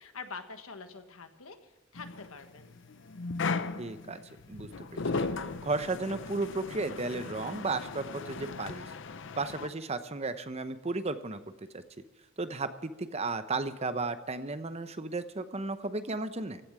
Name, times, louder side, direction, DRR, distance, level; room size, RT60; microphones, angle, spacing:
voice 1, 0.0-2.7, left 4 dB, 85° left, 7 dB, 1.5 m, -45 dB
sound 1, 1.9-9.7, left 4 dB, 60° left, 0.7 m, -37 dB
voice 2, 3.8-4.2 4.5-8.9 9.4-11.8 12.4-16.6, right 3 dB, 30° right, 11 dB, 0.8 m, -34 dB
16.0 x 8.5 x 7.4 m, 1.2 s
head